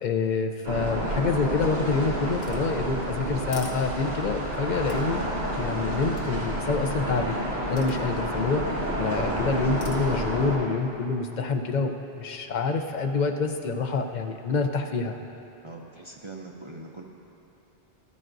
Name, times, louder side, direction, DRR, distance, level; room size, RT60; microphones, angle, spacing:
voice 1, 0.0-5.2 5.5-7.3 7.7-15.2, left 4 dB, 50° left, 5 dB, 0.7 m, -27 dB
sound 1, 0.6-10.6, right 1 dB, 80° right, 2.5 m, -30 dB
sound 2, 2.4-4.4 4.9-6.7 7.8-8.7 9.8-10.5, left 3 dB, 65° left, 1.1 m, -47 dB
voice 2, 15.6-17.0, right 2 dB, 35° right, 0 dB, 0.6 m, -42 dB
13.5 x 13.5 x 2.6 m, 2.9 s
omnidirectional pair, 1.0 m